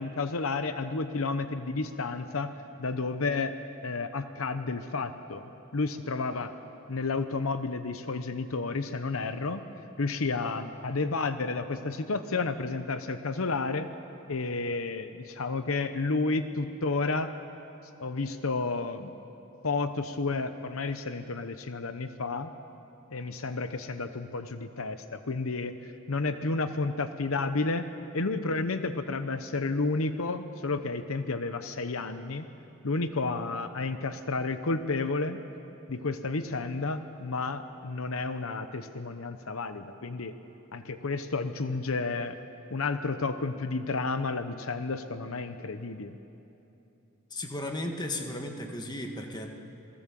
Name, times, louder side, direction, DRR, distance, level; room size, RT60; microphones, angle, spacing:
voice 1, 0.0-3.5 3.8-5.4 5.7-6.5 6.9-9.6 10.0-13.9 14.3-17.3 18.0-19.1 19.6-22.5 23.1-25.7 26.1-27.9 28.1-32.4 32.8-35.4 35.9-40.3 40.7-42.4 42.7-46.2, left 3 dB, 75° left, 10 dB, 0.9 m, -31 dB
voice 2, 47.3-49.6, left 1 dB, 20° left, 3 dB, 1.7 m, -35 dB
28.0 x 18.5 x 7.6 m, 3.0 s
head